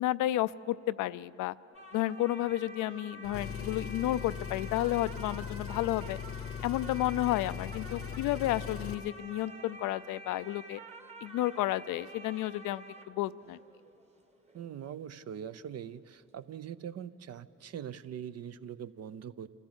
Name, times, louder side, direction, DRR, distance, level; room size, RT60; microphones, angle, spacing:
voice 1, 0.0-1.5 1.9-6.2 6.6-10.8 11.2-13.6, left 15 dB, 90° left, 15 dB, 0.5 m, -32 dB
sound 1, 1.7-15.6 15.9-16.0, right 2 dB, 20° right, 1.5 m, -49 dB
Engine, 3.2-9.1, left 8 dB, 50° left, 0.8 m, -40 dB
voice 2, 14.5-19.6, right 9 dB, 55° right, 14 dB, 0.7 m, -42 dB
26.0 x 14.5 x 8.0 m, 2.8 s
cardioid pair, 90°, 30 cm